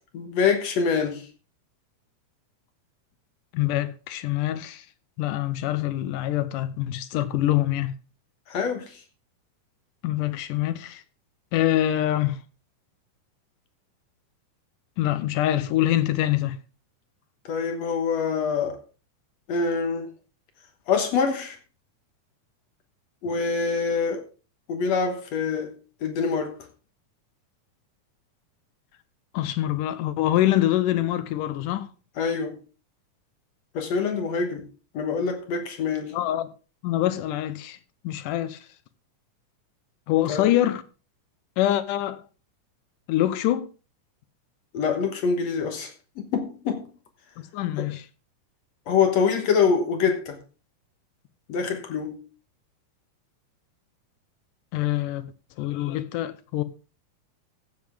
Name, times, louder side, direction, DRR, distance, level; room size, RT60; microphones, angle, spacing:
voice 1, 0.1-1.3 8.5-9.0 17.5-18.8 19.5-20.1 20.9-21.6 23.2-24.2 24.7-25.8 26.0-26.6 32.2-32.6 33.7-34.7 34.9-36.2 40.3-40.5 44.7-46.9 47.8-47.9 48.9-50.4 51.5-52.2, left 5 dB, 60° left, 2.2 m, -25 dB
voice 2, 3.5-4.9 5.2-7.9 10.0-11.0 11.5-12.4 15.0-16.6 29.3-31.9 36.1-36.5 36.8-37.8 38.0-38.6 40.1-40.8 41.6-42.2 43.1-43.7 47.4-48.0 54.7-55.3 55.6-56.6, left 13 dB, 80° left, 2.4 m, -25 dB
15.0 x 7.7 x 3.5 m
omnidirectional pair, 3.7 m